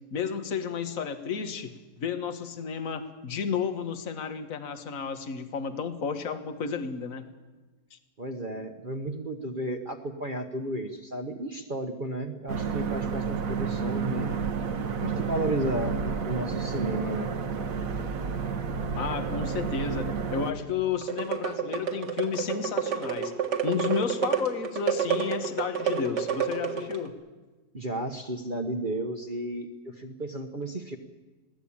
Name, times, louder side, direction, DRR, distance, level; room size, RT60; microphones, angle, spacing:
voice 1, 0.1-1.7 2.0-7.2 7.9-8.0 19.0-27.1, left 6 dB, 55° left, 8 dB, 1.7 m, -32 dB
voice 2, 8.2-14.3 15.0-17.3 27.7-31.0, right 1 dB, 35° right, 3 dB, 1.2 m, -33 dB
sound 1, 12.5-20.5, right 5 dB, 55° right, 1.4 m, -30 dB
sound 2, 21.0-27.1, right 7 dB, 75° right, 2.5 m, -29 dB
22.0 x 16.5 x 8.7 m, 1.2 s
omnidirectional pair, 1.8 m